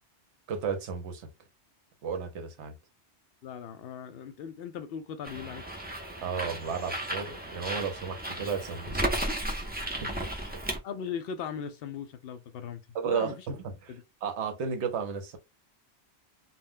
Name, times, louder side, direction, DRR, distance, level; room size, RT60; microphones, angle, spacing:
voice 1, 0.5-1.3 2.0-2.7 6.2-9.0 10.0-10.1 12.9-13.9 14.2-15.4, right 6 dB, 75° right, 1.0 m, -33 dB
voice 2, 3.4-5.6 10.8-13.5 13.9-14.0, left 7 dB, 65° left, 0.7 m, -39 dB
Bird, 5.2-10.8, right 1 dB, 15° right, 0.4 m, -34 dB
2.2 x 2.1 x 3.6 m
omnidirectional pair, 1.2 m